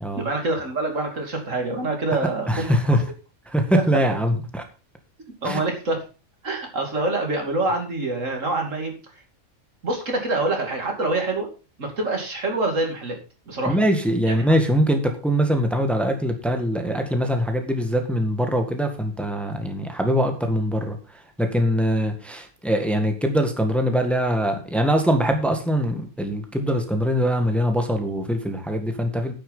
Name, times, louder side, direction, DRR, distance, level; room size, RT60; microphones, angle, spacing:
voice 1, 0.1-3.0 5.4-6.0 6.4-8.9 9.8-11.5 11.8-13.2 13.5-13.8 14.3-14.5, right 2 dB, 80° right, 3 dB, 3.2 m, -26 dB
voice 2, 2.5-3.0 3.5-4.6 5.4-5.6 13.7-21.0 21.4-29.3, equal, ahead, 4 dB, 1.7 m, -22 dB
9.7 x 8.6 x 5.5 m, 0.34 s
omnidirectional pair, 1.3 m